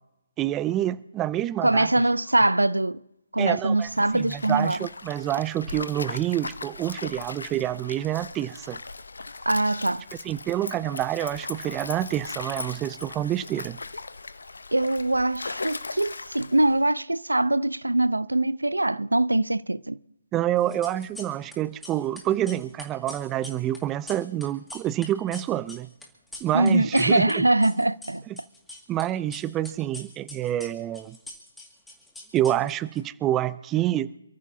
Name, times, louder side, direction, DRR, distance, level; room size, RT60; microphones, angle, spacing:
voice 1, 0.4-1.9 3.4-8.8 10.2-13.8 20.3-25.9 26.4-27.5 28.3-28.4 28.9-31.2 32.3-34.2, right 13 dB, 15° right, 0.4 m, -27 dB
voice 2, 1.6-3.0 3.3-4.8 9.5-10.0 14.7-20.0 26.5-28.2, right 2 dB, 90° right, 0.5 m, -23 dB
Stream, 3.8-16.9, left 3 dB, 75° left, 0.8 m, -38 dB
sound 1, 20.6-21.6 21.8-27.3 27.6-29.0 29.3-33.0, left 2 dB, 5° left, 2.1 m, -43 dB
28.0 x 14.0 x 2.7 m
figure-of-eight pair, 140°, 0 cm